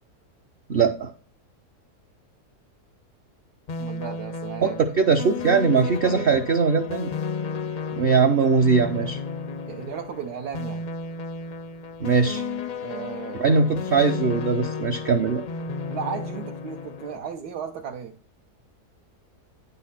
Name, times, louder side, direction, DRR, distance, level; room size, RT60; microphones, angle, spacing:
voice 1, 0.7-1.1 4.6-7.1 7.9-9.2 12.0-12.4 13.4-15.4, right 5 dB, 60° right, 4 dB, 0.6 m, -21 dB
sound 1, 3.7-17.2, left 4 dB, 70° left, 0.4 m, -33 dB
voice 2, 3.8-4.8 5.6-6.3 9.7-10.8 12.8-13.6 15.9-18.1, right 7 dB, 85° right, 3 dB, 1.3 m, -35 dB
9.4 x 4.1 x 5.7 m, 0.41 s
omnidirectional pair, 1.7 m